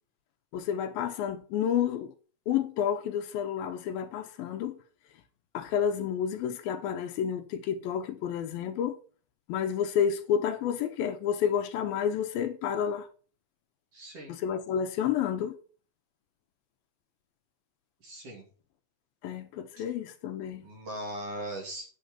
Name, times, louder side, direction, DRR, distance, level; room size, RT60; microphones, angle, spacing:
voice 1, 0.5-2.1 2.5-4.7 5.5-9.0 9.5-13.1 14.3-15.5 19.2-20.6, left 8 dB, 80° left, 2.6 m, -30 dB
voice 2, 13.9-14.3 18.0-18.4 20.6-21.9, right 1 dB, 45° right, 3.4 m, -39 dB
9.2 x 7.4 x 5.1 m
omnidirectional pair, 4.4 m